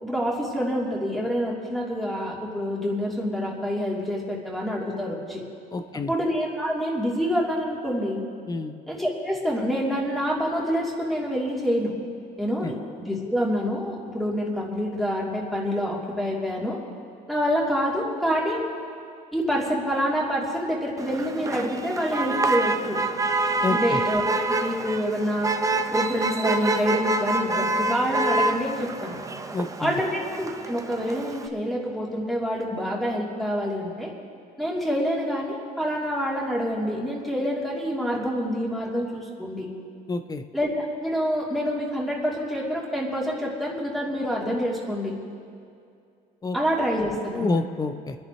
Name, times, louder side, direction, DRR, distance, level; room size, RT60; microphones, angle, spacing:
voice 1, 0.0-5.4 6.1-8.2 8.9-11.9 12.4-16.8 17.3-18.7 19.3-23.0 23.7-24.2 24.6-25.5 25.9-29.1 29.8-34.1 34.6-39.7 40.5-45.1 46.5-47.6, equal, ahead, -4 dB, 3.3 m, -27 dB
voice 2, 5.7-6.1 8.5-8.8 12.6-12.7 23.6-24.0 29.5-30.0 40.1-40.4 46.4-46.6 47.3-48.2, left 3 dB, 20° left, 9 dB, 0.8 m, -28 dB
Motor vehicle (road), 21.0-31.5, right 2 dB, 20° right, 0.7 m, -27 dB
30.0 x 10.5 x 3.2 m, 2.4 s
cardioid pair, 110°, 17 cm